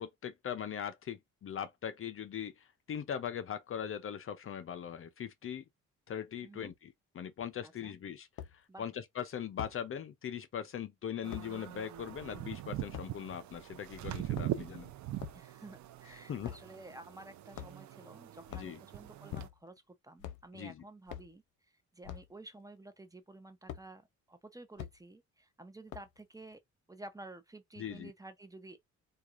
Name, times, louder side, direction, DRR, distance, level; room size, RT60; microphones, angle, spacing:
voice 1, 0.0-5.6 6.1-14.9 16.3-16.6 18.5-18.8 20.5-20.8 27.8-28.1, left 8 dB, 45° left, 0.5 m, -40 dB
voice 2, 6.4-6.7 7.6-8.0 8.7-8.8 15.3-21.4 21.9-26.6 26.9-28.8, right 2 dB, 10° right, 0.7 m, -52 dB
sound 1, 7.4-7.5 8.4-8.5 9.6-9.8 11.3-11.5 12.9-13.1 14.2-14.7 15.2-15.4 16.4-16.7 17.5-17.9 18.4-18.7 19.3-19.8 20.2-20.5 21.1-21.3 22.0-22.3 23.7-23.9 24.8-25.0 25.9-26.2, left 11 dB, 80° left, 0.7 m, -44 dB
sound 2, 11.2-19.5, right 13 dB, 65° right, 0.6 m, -42 dB
4.5 x 2.3 x 2.5 m
cardioid pair, 90°, 30 cm